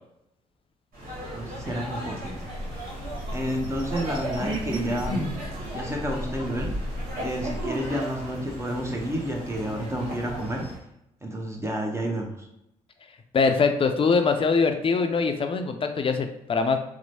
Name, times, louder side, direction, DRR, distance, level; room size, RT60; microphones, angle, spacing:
sound 1, 0.9-10.8, right 1 dB, 70° right, 1.1 m, -36 dB
voice 1, 1.3-2.5 3.3-5.3 5.7-6.7 7.2-10.6 11.2-12.5, equal, 15° right, 0 dB, 0.7 m, -30 dB
sound 2, 2.2-7.7, equal, 90° right, 0.6 m, -35 dB
voice 2, 13.3-16.8, left 4 dB, 35° left, 7 dB, 0.4 m, -23 dB
3.0 x 2.1 x 2.7 m, 0.83 s
hypercardioid pair, 50°, 16 cm